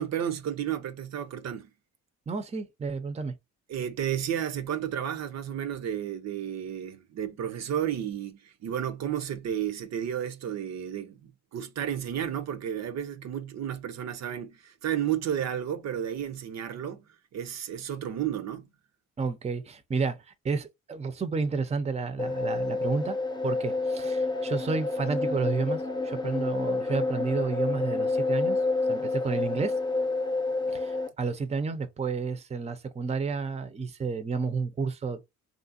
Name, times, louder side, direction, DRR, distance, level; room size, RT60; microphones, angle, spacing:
voice 1, 0.0-1.7 3.7-17.0 17.3-18.7, right 9 dB, 60° right, 0.6 m, -32 dB
voice 2, 2.3-3.3 19.2-23.2 23.4-28.6 28.9-29.8 30.7-35.2, right 4 dB, 20° right, 0.6 m, -31 dB
sound 1, 22.2-31.1, left 3 dB, 15° left, 0.7 m, -29 dB
3.2 x 2.5 x 2.6 m
cardioid pair, 90°, 30 cm